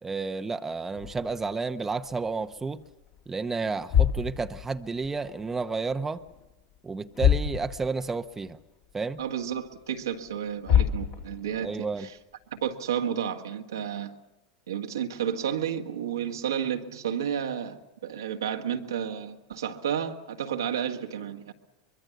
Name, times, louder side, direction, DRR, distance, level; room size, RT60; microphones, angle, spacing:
voice 1, 0.0-2.8 3.3-6.2 6.8-8.6 8.9-9.2 11.6-12.1, right 4 dB, 15° right, 8 dB, 1.0 m, -31 dB
sound 1, 0.9-2.6 2.9-3.2 3.7-5.5 5.8-6.5 6.8-6.9 7.1-8.1 8.5-8.6 9.2-9.3 10.3-10.4 10.6-11.7, left 9 dB, 55° left, 3.3 m, -27 dB
voice 2, 9.2-12.1 12.5-14.2 14.7-21.5, right 8 dB, 85° right, 4 dB, 1.8 m, -31 dB
24.0 x 22.5 x 7.2 m, 0.99 s
hypercardioid pair, 95°, 2 cm